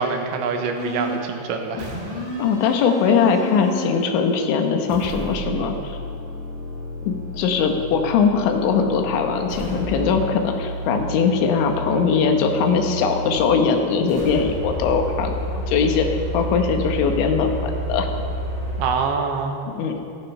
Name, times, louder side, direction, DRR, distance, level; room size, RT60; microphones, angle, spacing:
voice 1, 0.0-1.9 18.8-19.5, right 5 dB, 85° right, 4 dB, 3.3 m, -25 dB
sound 1, 0.7-1.3 1.8-4.0 4.9-13.5 14.1-18.9, equal, 10° right, 3.6 m, -30 dB
voice 2, 2.4-6.0 7.1-15.4 15.7-16.1 16.3-18.1 19.7-20.0, left 5 dB, 80° left, 4 dB, 3.4 m, -21 dB
15.0 x 11.5 x 5.5 m, 2.7 s
omnidirectional pair, 5.3 m